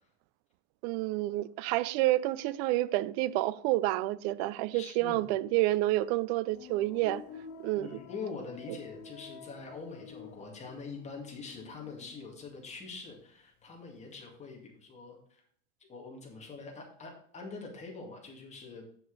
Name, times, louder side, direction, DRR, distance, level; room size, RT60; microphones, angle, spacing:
voice 1, 0.8-7.2 7.6-8.0 8.7-8.8, right 17 dB, 60° right, 0.5 m, -29 dB
voice 2, 4.7-5.2 7.7-15.4 15.9-18.9, left 4 dB, 20° left, 2.2 m, -44 dB
sound 1, 6.5-13.4 13.6-14.4, left 7 dB, 40° left, 0.9 m, -51 dB
8.4 x 6.9 x 4.0 m
cardioid pair, 160°, 37 cm